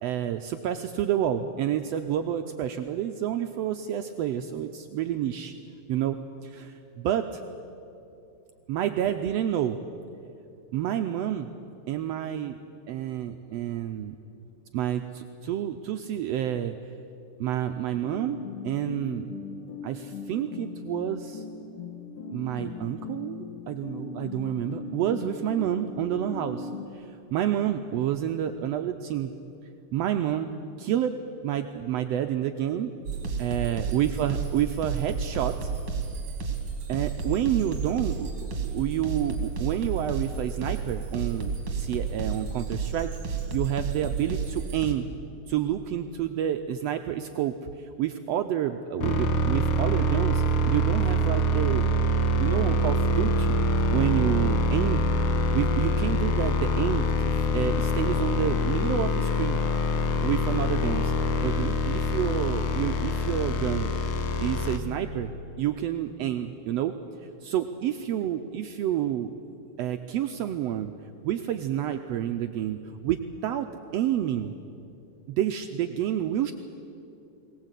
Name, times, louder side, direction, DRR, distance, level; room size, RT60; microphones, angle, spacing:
voice 1, 0.0-5.5 5.9-7.4 8.7-9.8 10.7-11.5 11.9-12.6 12.9-14.1 14.7-16.7 17.4-18.4 18.6-19.3 19.8-21.4 22.3-29.4 29.9-30.5 30.8-31.2 31.4-32.9 33.4-35.7 36.9-45.1 45.5-51.9 52.4-53.6 53.9-55.0 55.5-59.6 60.2-63.9 64.4-65.3 65.6-66.9 67.4-69.3 69.8-70.9 71.2-74.6 75.3-76.5, right 11 dB, 85° right, 7 dB, 1.4 m, -29 dB
sound 1, 17.9-26.9, left 4 dB, 85° left, 2.9 m, -39 dB
sound 2, 33.1-44.9, right 5 dB, 45° right, 2.7 m, -32 dB
sound 3, 49.0-64.8, equal, 65° left, 1.4 m, -25 dB
22.0 x 18.0 x 8.2 m, 2.7 s
omnidirectional pair, 3.6 m